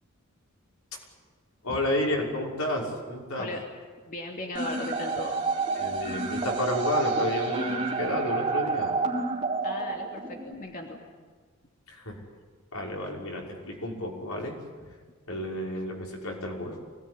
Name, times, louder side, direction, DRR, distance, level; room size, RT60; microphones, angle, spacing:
voice 1, 1.6-3.5 5.8-8.9 11.9-12.2 12.7-14.5 15.3-16.8, left 1 dB, 85° left, -1 dB, 6.0 m, -31 dB
voice 2, 4.0-5.4 9.6-11.0, left 1 dB, 40° left, 0 dB, 2.8 m, -36 dB
sound 1, 4.5-10.5, right 3 dB, 25° right, 4.1 m, -29 dB
25.0 x 19.0 x 9.9 m, 1.5 s
head